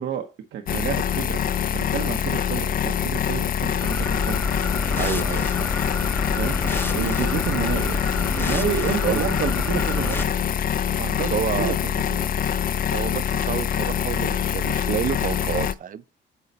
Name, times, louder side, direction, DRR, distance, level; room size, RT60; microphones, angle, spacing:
voice 1, 0.0-1.4 1.7-4.4 6.4-8.0 8.4-10.3 11.0-12.3, right 8 dB, 70° right, 0.9 m, -30 dB
sound 1, 0.7-15.7, left 9 dB, 45° left, 0.4 m, -25 dB
sound 2, 3.8-10.2, left 2 dB, 10° left, 0.7 m, -29 dB
voice 2, 5.0-5.7 9.0-9.3 11.3-11.8 12.9-16.0, right 8 dB, 45° right, 0.4 m, -29 dB
8.3 x 4.2 x 4.0 m
cardioid pair, 90°, 20 cm